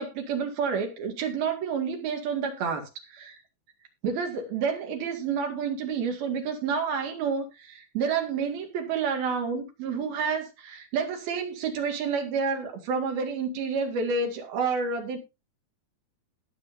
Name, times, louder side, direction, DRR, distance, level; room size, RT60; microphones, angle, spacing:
voice 1, 0.0-3.4 4.0-15.2, right 5 dB, 90° right, 4 dB, 3.9 m, -29 dB
19.5 x 7.1 x 2.7 m, 0.25 s
omnidirectional pair, 4.2 m